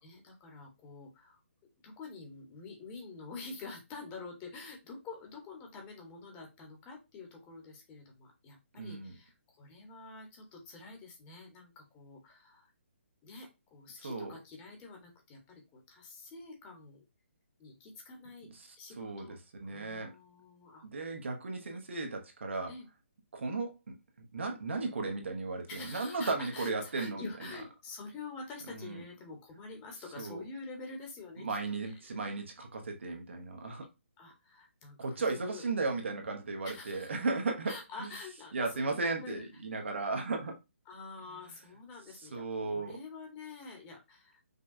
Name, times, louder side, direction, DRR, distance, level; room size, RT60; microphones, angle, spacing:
voice 1, 0.0-1.4 1.8-12.7 13.2-17.0 17.6-19.4 19.6-20.9 21.5-21.8 22.7-22.9 25.7-31.5 31.8-32.0 34.2-35.6 36.6-37.2 37.6-39.4 40.8-44.4, left 3 dB, 20° left, 1.1 m, -47 dB
voice 2, 8.8-9.2 14.0-14.3 18.5-18.7 19.0-19.4 19.6-20.1 20.8-22.7 23.3-27.3 28.7-29.0 30.2-30.4 31.4-33.9 35.0-38.1 38.5-40.6 41.3-41.4 42.3-43.0, right 3 dB, 65° right, 1.0 m, -35 dB
5.1 x 2.3 x 2.6 m
figure-of-eight pair, 145°, 7 cm